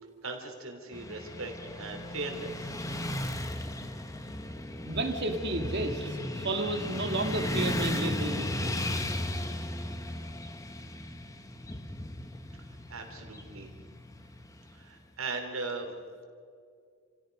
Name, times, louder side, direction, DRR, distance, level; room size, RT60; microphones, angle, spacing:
voice 1, 0.2-2.7 12.9-13.7 14.7-16.0, right 3 dB, 80° right, 3 dB, 3.5 m, -38 dB
Motorcycle / Traffic noise roadway noise, 0.9-15.0, left 1 dB, 15° left, 1.1 m, -36 dB
voice 2, 4.8-8.8, right 2 dB, 55° right, 5 dB, 2.2 m, -32 dB
29.0 x 16.5 x 5.4 m, 2.3 s
head